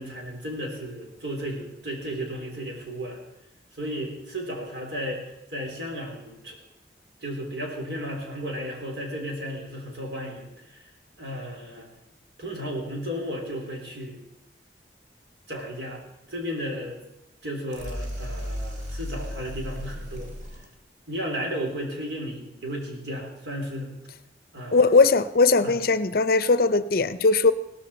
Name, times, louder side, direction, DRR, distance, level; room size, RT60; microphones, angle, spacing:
voice 1, 0.0-3.2 3.7-5.2 5.5-6.6 7.2-10.8 11.2-11.9 12.4-14.2 15.5-16.0 16.3-17.0 17.4-20.3 21.1-23.9 24.5-24.9 25.6-25.8, equal, 85° right, 3.5 m, -34 dB
sound 1, 17.7-20.7, equal, 45° right, 2.3 m, -34 dB
voice 2, 24.7-27.5, left 3 dB, 55° left, 0.6 m, -19 dB
17.0 x 13.5 x 4.3 m
head